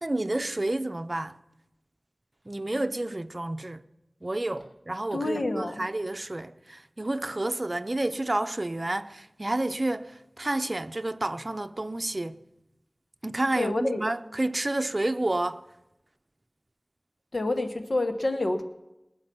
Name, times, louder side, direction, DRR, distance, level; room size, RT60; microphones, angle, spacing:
voice 1, 0.0-1.4 2.4-3.9 4.2-12.4 13.2-15.6, right 2 dB, 45° right, 0.6 m, -30 dB
voice 2, 5.1-5.8 13.6-14.0 17.3-18.6, left 2 dB, 75° left, 1.2 m, -28 dB
21.0 x 7.8 x 6.0 m
wide cardioid pair, 45°, 0 cm